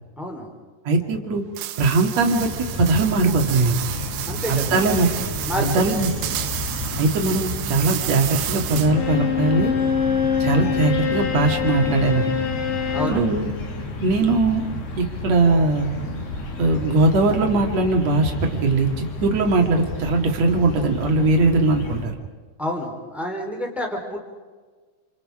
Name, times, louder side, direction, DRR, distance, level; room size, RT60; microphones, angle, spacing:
voice 1, 0.2-0.5 4.3-4.9 5.4-5.8 12.9-13.3 22.6-24.2, left 1 dB, ahead, 2 dB, 2.9 m, -29 dB
voice 2, 0.8-1.4 1.8-2.5 2.8-3.8 4.5-5.1 5.6-6.1 7.0-9.7 10.4-12.3 13.1-13.5 14.0-14.6 15.0-15.9 16.6-22.1, right 3 dB, 50° right, 2 dB, 2.3 m, -20 dB
sound 1, 1.6-9.1, right 13 dB, 80° right, 3.4 m, -31 dB
sound 2, 2.3-22.1, left 2 dB, 55° left, 4.8 m, -32 dB
Bowed string instrument, 8.9-13.2, left 8 dB, 80° left, 6.0 m, -24 dB
29.0 x 28.0 x 5.0 m, 1.4 s
omnidirectional pair, 5.9 m